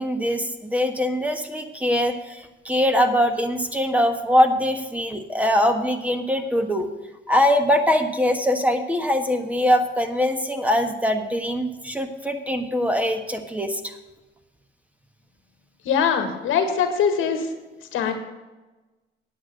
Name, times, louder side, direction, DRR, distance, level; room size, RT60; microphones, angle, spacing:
voice 1, 0.0-6.9 7.3-14.0, left 1 dB, 5° right, 6 dB, 1.3 m, -22 dB
voice 2, 15.8-17.5 17.9-18.1, left 7 dB, 85° left, 6 dB, 1.7 m, -22 dB
9.5 x 8.2 x 6.4 m, 1.1 s
cardioid pair, 90°, 20 cm